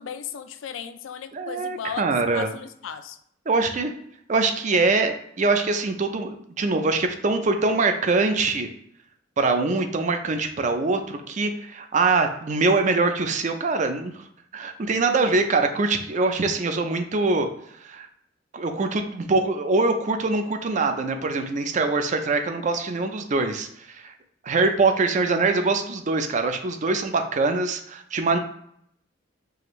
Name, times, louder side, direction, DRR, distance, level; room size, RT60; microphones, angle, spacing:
voice 1, 0.0-2.0 2.3-3.2, left 7 dB, 85° left, 10 dB, 0.4 m, -35 dB
voice 2, 1.3-2.5 3.5-3.9 4.3-8.7 9.4-14.2 14.5-17.5 17.8-18.1 18.5-24.1 24.4-28.4, right 3 dB, 40° right, 6 dB, 0.4 m, -23 dB
4.8 x 2.5 x 3.0 m, 0.71 s
head